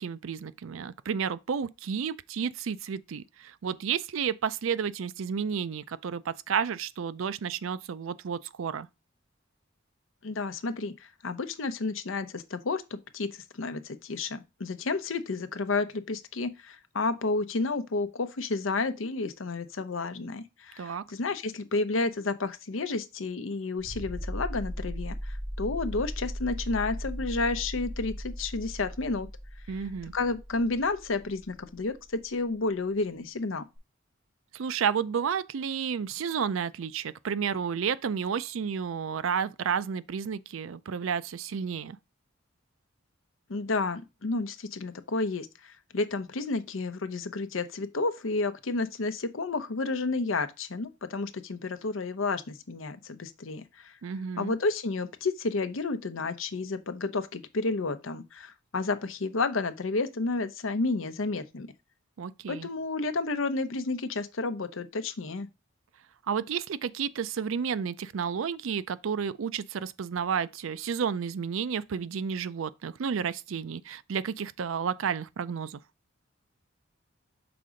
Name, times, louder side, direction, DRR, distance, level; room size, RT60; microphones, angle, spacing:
voice 1, 0.0-8.9 20.8-21.0 29.7-30.1 34.5-42.0 54.0-54.5 62.2-62.7 66.3-75.8, right 7 dB, 80° right, 0.4 m, -31 dB
voice 2, 10.2-29.3 30.1-33.6 43.5-53.9 54.4-61.7 62.5-65.5, left 3 dB, 80° left, 0.7 m, -31 dB
sound 1, 23.8-32.2 33.8-33.9, equal, 55° right, 3.2 m, -37 dB
5.9 x 3.7 x 5.0 m
head